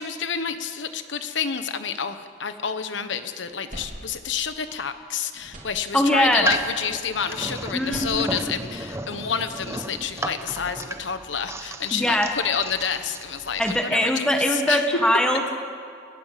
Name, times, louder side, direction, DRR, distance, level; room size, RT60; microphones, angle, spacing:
voice 1, 0.0-14.8, left 7 dB, 75° left, 9 dB, 1.1 m, -29 dB
sound 1, 0.7-0.8 1.2-2.8 3.2-5.1 5.3-6.4 7.7-9.3, equal, 45° right, 3.7 m, -45 dB
voice 2, 5.9-6.5 7.7-8.6 11.9-12.3 13.6-15.5, equal, 5° left, 3 dB, 1.7 m, -22 dB
sound 2, 6.2-13.8, right 1 dB, 15° right, 0.9 m, -34 dB
29.5 x 13.5 x 7.6 m, 2.4 s
head